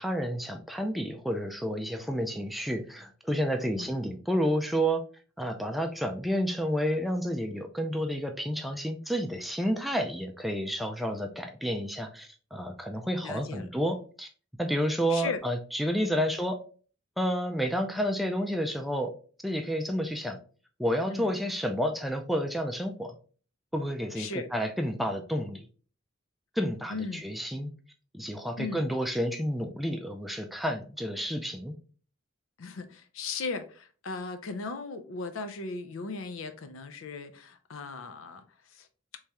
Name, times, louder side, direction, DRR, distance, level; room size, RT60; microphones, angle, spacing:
voice 1, 0.0-5.0 5.4-14.3 14.6-16.6 17.2-19.1 19.4-20.4 20.8-23.2 23.7-25.7 26.6-27.7 28.1-31.7, equal, ahead, 4 dB, 0.3 m, -30 dB
voice 2, 13.2-13.7 15.1-15.4 21.1-21.3 24.2-24.5 26.9-27.2 28.6-28.8 32.6-38.4 38.7-38.9, left 4 dB, 80° left, 9 dB, 0.5 m, -37 dB
3.5 x 3.1 x 2.8 m, 0.40 s
head